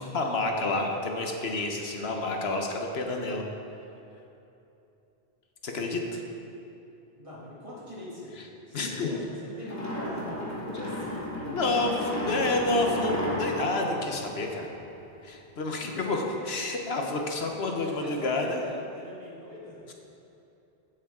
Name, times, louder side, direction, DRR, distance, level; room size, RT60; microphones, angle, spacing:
voice 1, 0.0-3.4 5.6-6.2 8.7-9.2 11.4-11.9 12.2-14.7 15.2-18.6, left 2 dB, 80° left, 2 dB, 1.3 m, -29 dB
voice 2, 7.1-8.4 8.7-12.2 17.3-17.6 17.8-19.8, left 1 dB, 30° right, -7 dB, 2.5 m, -43 dB
sound 1, 9.7-15.0, equal, 15° left, 1.4 m, -33 dB
15.5 x 7.2 x 3.7 m, 2.8 s
omnidirectional pair, 1.0 m